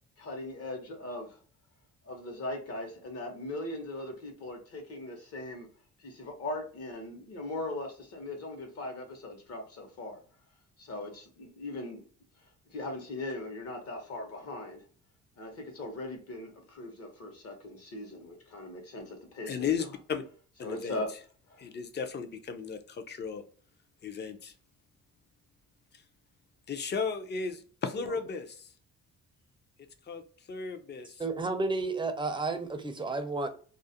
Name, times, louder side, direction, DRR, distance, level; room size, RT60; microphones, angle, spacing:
voice 1, 0.2-1.3 2.1-5.7 6.0-10.2 10.8-12.0 12.7-14.8 15.4-19.5 20.6-21.1, left 2 dB, 55° left, 1.0 m, -39 dB
voice 2, 19.5-20.2 20.6-21.2 21.6-23.5 24.0-24.5 25.9-26.0 26.7-28.7 30.0-31.2, left 6 dB, 35° left, 0.5 m, -35 dB
voice 3, 31.2-33.5, right 3 dB, 15° right, 0.5 m, -31 dB
2.4 x 2.0 x 2.7 m
cardioid pair, 90°, 30 cm